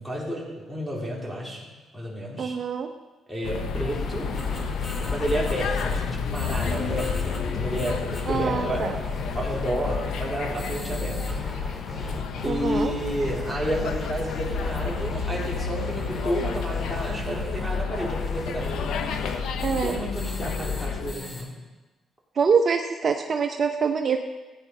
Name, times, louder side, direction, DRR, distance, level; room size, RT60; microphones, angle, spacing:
voice 1, 0.0-1.7 1.9-2.6 3.3-4.3 5.1-9.0 9.3-11.3 12.4-18.9 19.7-21.5, equal, ahead, -4 dB, 4.0 m, -31 dB
voice 2, 2.4-2.9 8.3-9.0 12.5-12.9 19.6-20.0 22.4-24.2, right 5 dB, 45° right, 5 dB, 0.8 m, -25 dB
sound 1, 3.4-21.1, left 5 dB, 80° left, 1.0 m, -30 dB
sound 2, 3.9-21.4, left 1 dB, 30° left, 2.7 m, -38 dB
15.0 x 9.3 x 5.5 m, 1.2 s
cardioid pair, 90°, 0 cm